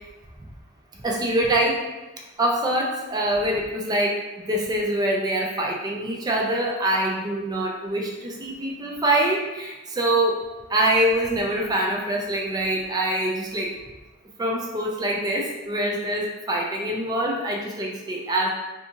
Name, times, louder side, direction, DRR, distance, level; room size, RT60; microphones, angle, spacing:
voice 1, 1.0-1.8 2.4-4.2 4.5-10.3 10.7-13.7 14.4-18.5, right 1 dB, 20° right, -1 dB, 0.4 m, -24 dB
2.9 x 2.4 x 2.5 m, 1.1 s
head